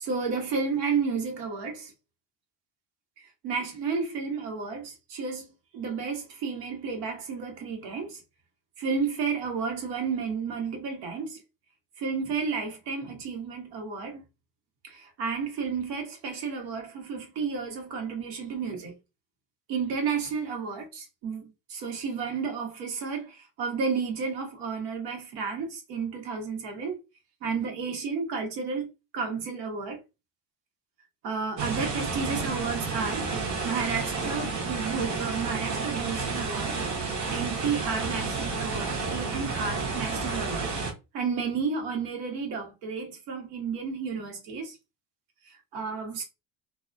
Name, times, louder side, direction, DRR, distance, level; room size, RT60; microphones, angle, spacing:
voice 1, 0.0-1.9 3.2-5.5 5.7-8.2 8.8-11.4 12.0-14.2 14.8-18.9 19.7-27.0 27.4-30.0 31.2-33.3 33.6-36.8 37.3-40.7 41.1-44.8 45.4-46.2, right 5 dB, 75° right, 1.0 m, -32 dB
sound 1, 31.6-40.9, right 4 dB, 50° right, 0.8 m, -31 dB
2.3 x 2.2 x 2.4 m
cardioid pair, 150°, 36 cm